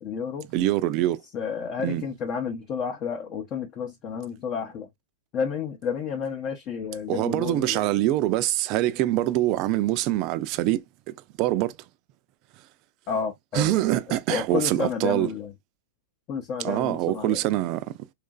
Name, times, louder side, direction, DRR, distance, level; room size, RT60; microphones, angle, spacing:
voice 1, 0.0-0.5 1.3-4.9 5.3-7.8 13.1-13.8 14.1-15.5 16.3-17.4, left 6 dB, 35° left, 0.6 m, -31 dB
voice 2, 0.5-1.2 1.8-2.0 7.1-10.8 11.4-11.7 13.5-15.3 16.6-17.8, right 15 dB, 45° right, 0.4 m, -24 dB
2.9 x 2.5 x 2.2 m
hypercardioid pair, 115°, 0 cm